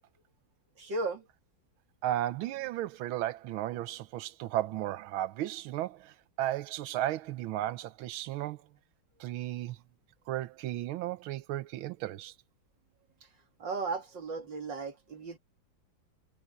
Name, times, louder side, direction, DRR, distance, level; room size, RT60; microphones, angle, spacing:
voice 1, 0.8-1.2 13.6-15.4, right 3 dB, 60° right, 3.2 m, -35 dB
voice 2, 2.0-8.6 9.2-9.8 10.3-12.3, right 14 dB, 85° right, 1.5 m, -34 dB
omnidirectional pair, 2.2 m